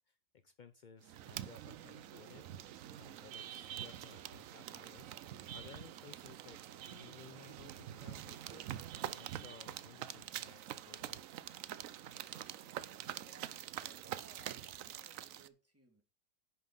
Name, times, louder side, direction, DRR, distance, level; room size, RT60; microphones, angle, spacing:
voice 1, 0.1-11.2, left 6 dB, 70° left, 9 dB, 0.4 m, -58 dB
sound 1, 1.0-15.5, right 11 dB, 65° right, 0.9 m, -46 dB
voice 2, 12.9-16.0, right 2 dB, 10° right, 3 dB, 2.3 m, -63 dB
10.5 x 5.9 x 5.5 m, 0.32 s
omnidirectional pair, 1.7 m